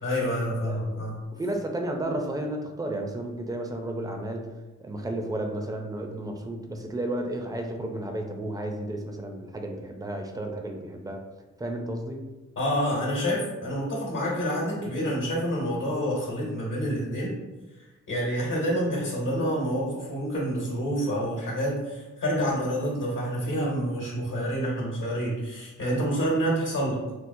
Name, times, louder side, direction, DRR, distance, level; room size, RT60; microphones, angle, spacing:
voice 1, 0.0-1.1 12.6-17.3 18.1-27.0, equal, 75° left, -5 dB, 1.0 m, -28 dB
voice 2, 1.3-4.5 4.8-11.2 11.6-12.2, right 1 dB, 10° right, 3 dB, 0.4 m, -32 dB
4.3 x 2.0 x 2.6 m, 1.2 s
wide cardioid pair, 90°, 32 cm